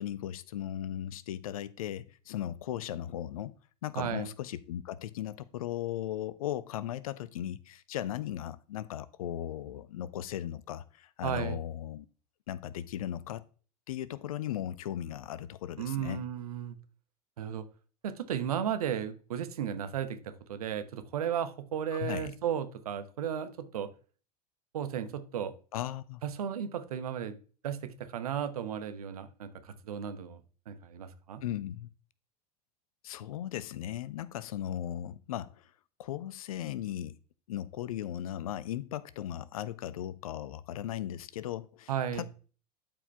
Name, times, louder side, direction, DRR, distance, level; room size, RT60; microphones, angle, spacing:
voice 1, 0.0-3.6 3.8-12.1 12.5-13.4 13.9-16.2 21.9-22.3 25.7-26.2 31.4-31.9 33.0-35.7 36.0-37.2 37.5-42.3, left 11 dB, 60° left, 0.6 m, -37 dB
voice 2, 3.9-4.3 11.2-11.6 15.8-16.7 17.4-17.6 18.0-20.2 20.5-23.9 24.7-25.5 26.2-27.4 27.6-30.4 30.7-31.4 41.9-42.3, right 9 dB, 65° right, 1.0 m, -34 dB
12.0 x 4.9 x 3.4 m
figure-of-eight pair, 80°, 20 cm